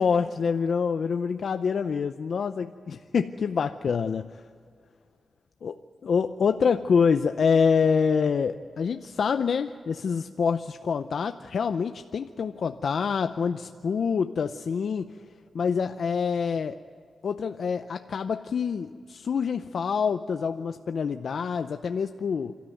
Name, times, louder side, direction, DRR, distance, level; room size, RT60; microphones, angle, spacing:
voice 1, 0.0-4.4 5.6-5.7 6.0-15.1 15.5-16.8 17.2-22.5, left 6 dB, 65° left, 8 dB, 0.6 m, -26 dB
27.5 x 13.5 x 9.2 m, 2.2 s
wide cardioid pair, 105°, 0 cm